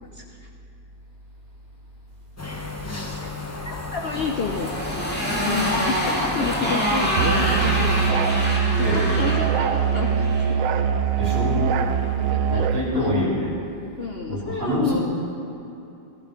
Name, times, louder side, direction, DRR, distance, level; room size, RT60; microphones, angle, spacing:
sound 1, 2.4-8.1, left 2 dB, 20° left, 0.4 m, -33 dB
voice 1, 2.9-3.3 3.6-4.7 5.4-8.4 8.8-10.6 12.0-13.1 14.0-15.0, left 4 dB, 90° left, 2 dB, 0.5 m, -30 dB
Motorcycle, 4.1-10.5, equal, 5° left, 2.4 m, -26 dB
Musical instrument, 7.2-12.9, right 7 dB, 70° right, 0.8 m, -22 dB
voice 2, 8.8-9.2 11.2-11.6 12.5-13.5 14.3-15.0, left 1 dB, 45° right, -7 dB, 4.4 m, -25 dB
15.0 x 14.0 x 3.8 m, 2.8 s
omnidirectional pair, 1.8 m